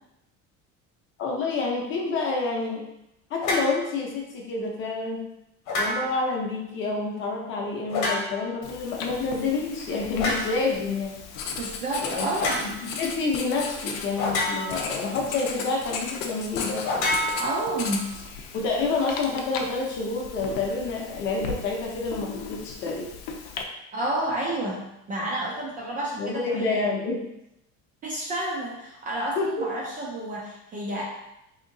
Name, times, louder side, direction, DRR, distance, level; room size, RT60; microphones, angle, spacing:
voice 1, 1.2-2.8 3.3-5.3 5.8-11.1 12.0-12.3 12.6-16.9 18.5-23.1 26.2-27.2 29.4-29.7, left 3 dB, 35° left, -1 dB, 0.6 m, -28 dB
sound 1, 3.4-3.8 5.7-6.3 7.9-8.5 10.2-10.5 12.4-12.7 14.2-14.9 16.8-18.0, left 1 dB, 55° left, 0.9 m, -27 dB
Writing, 8.6-23.6, left 5 dB, 80° left, 0.6 m, -36 dB
voice 2, 11.6-12.6 17.4-18.0 23.9-26.9 28.0-31.0, right 1 dB, 25° right, -4 dB, 0.3 m, -30 dB
3.4 x 2.8 x 2.6 m, 0.84 s
cardioid pair, 175°, 34 cm